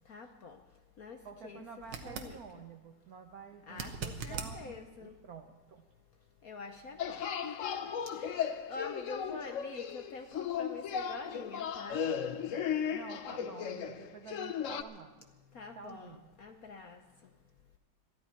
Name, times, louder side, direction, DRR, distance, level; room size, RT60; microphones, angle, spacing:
voice 1, 0.1-0.6 1.0-2.6 3.7-5.1 6.4-12.0 15.5-17.0, left 4 dB, 60° left, 6 dB, 1.0 m, -46 dB
voice 2, 1.2-4.7 5.0-5.9 12.9-15.3 15.8-16.3, right 6 dB, 65° right, 6 dB, 0.9 m, -49 dB
sound 1, 1.8-2.3 3.7-4.5 7.5-7.6, right 6 dB, 85° right, 2.1 m, -40 dB
sound 2, 7.0-14.8, left 8 dB, 80° left, 0.7 m, -36 dB
22.5 x 14.0 x 4.4 m, 1.2 s
omnidirectional pair, 2.3 m